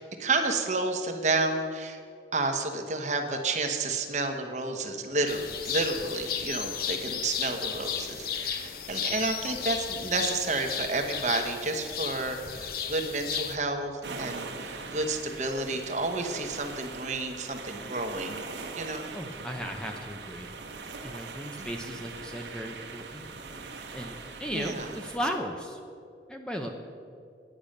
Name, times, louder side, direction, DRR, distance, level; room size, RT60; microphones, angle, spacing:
voice 1, 0.0-2.0 2.3-18.4 18.8-19.1 21.6-21.9 24.5-24.9, right 3 dB, 40° right, 5 dB, 1.1 m, -31 dB
sound 1, 5.3-13.6, left 8 dB, 55° left, 0.7 m, -34 dB
sound 2, 14.0-25.2, right 4 dB, 85° right, 1.1 m, -41 dB
voice 2, 19.1-20.5 21.0-23.2 23.9-25.8 26.3-26.7, equal, 5° left, 3 dB, 0.6 m, -36 dB
10.0 x 8.7 x 6.5 m, 2.3 s
head